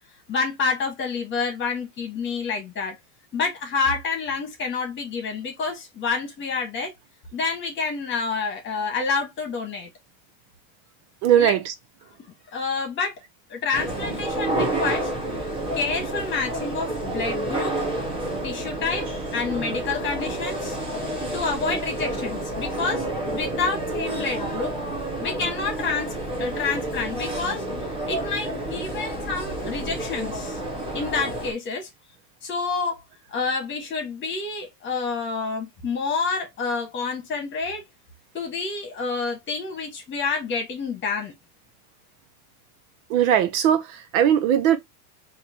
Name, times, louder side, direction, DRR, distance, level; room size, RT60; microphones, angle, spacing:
voice 1, 0.3-3.0 3.3-6.9 7.3-9.9 11.4-11.5 12.5-13.1 13.5-15.1 15.7-17.8 18.4-19.0 19.3-20.8 21.3-24.7 25.2-27.6 28.1-30.6 30.9-31.9 32.4-33.0 33.3-37.8 38.3-41.3, left 4 dB, 25° left, 1.5 m, -28 dB
voice 2, 11.2-11.7 43.1-44.8, right 10 dB, 60° right, 0.7 m, -19 dB
sound 1, 13.7-31.5, right 1 dB, 10° right, 1.0 m, -29 dB
3.2 x 2.9 x 4.3 m
supercardioid pair, 160°, 48 cm